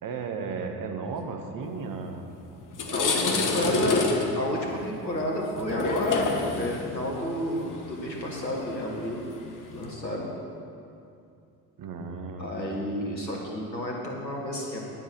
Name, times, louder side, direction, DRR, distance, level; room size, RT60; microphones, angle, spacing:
voice 1, 0.0-2.3 3.4-3.9 11.8-12.5, right 5 dB, 40° right, 4 dB, 1.5 m, -35 dB
sound 1, 2.1-2.3 2.6-9.9, left 4 dB, 40° left, 1.6 m, -29 dB
voice 2, 2.9-4.0 4.3-9.2 9.7-10.3 12.4-14.8, left 1 dB, 90° left, -2 dB, 1.7 m, -31 dB
10.0 x 9.2 x 6.0 m, 2.5 s
figure-of-eight pair, 55°, 50 cm